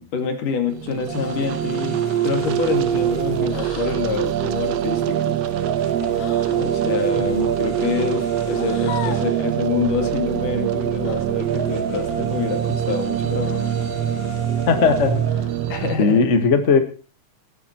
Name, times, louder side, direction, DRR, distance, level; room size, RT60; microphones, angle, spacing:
voice 1, 0.0-5.4 6.5-13.7 15.7-16.3, left 6 dB, 65° left, 7 dB, 3.8 m, -27 dB
sound 1, 0.7-16.0, right 11 dB, 70° right, 1.5 m, -24 dB
sound 2, 1.1-1.5 3.5-4.1 6.1-6.7 8.4-9.4 11.0-11.3 13.3-13.8 15.2-15.7, left 9 dB, 80° left, 2.9 m, -37 dB
sound 3, 1.1-15.5, right 2 dB, 25° right, 4.7 m, -35 dB
voice 2, 7.2-7.5 14.7-15.2 16.0-16.8, left 5 dB, 40° left, 8 dB, 1.0 m, -17 dB
18.0 x 11.5 x 4.5 m, 0.37 s
omnidirectional pair, 4.1 m